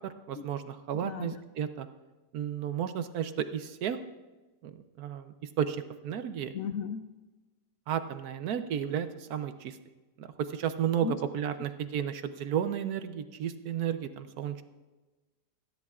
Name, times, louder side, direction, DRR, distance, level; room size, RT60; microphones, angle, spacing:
voice 1, 0.0-1.9 2.3-4.0 4.6-6.5 7.9-9.8 10.2-14.6, right 9 dB, 70° right, 10 dB, 1.1 m, -33 dB
voice 2, 1.0-1.4 6.5-7.1 11.0-11.2, left 7 dB, 70° left, 9 dB, 0.8 m, -35 dB
27.5 x 10.5 x 2.4 m, 1.2 s
omnidirectional pair, 1.8 m